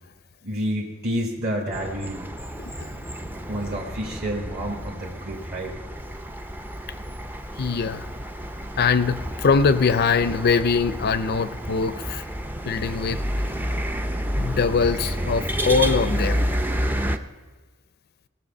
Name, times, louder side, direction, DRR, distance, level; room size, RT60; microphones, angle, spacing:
voice 1, 0.4-2.2 3.5-5.7, equal, 45° right, -2 dB, 1.4 m, -29 dB
sound 1, 1.7-17.2, equal, 10° right, 0.4 m, -30 dB
voice 2, 7.6-8.1 8.8-12.2 12.7-13.2 14.4-16.5, left 5 dB, 45° left, 12 dB, 0.5 m, -22 dB
17.0 x 6.9 x 5.3 m, 1.4 s
head